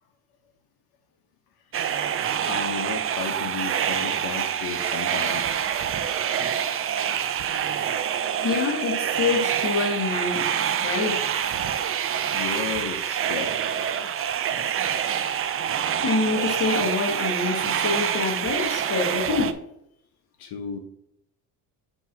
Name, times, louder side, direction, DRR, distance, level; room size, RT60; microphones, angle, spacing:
sound 1, 1.7-19.5, right 9 dB, 40° right, 0.5 m, -26 dB
voice 1, 2.5-5.7 12.3-13.7 20.4-20.8, left 6 dB, 85° left, 1.0 m, -33 dB
voice 2, 8.4-10.5 10.8-11.4 16.0-19.6, left 4 dB, 40° left, 1.6 m, -26 dB
8.0 x 2.9 x 5.9 m
cardioid pair, 135°, 36 cm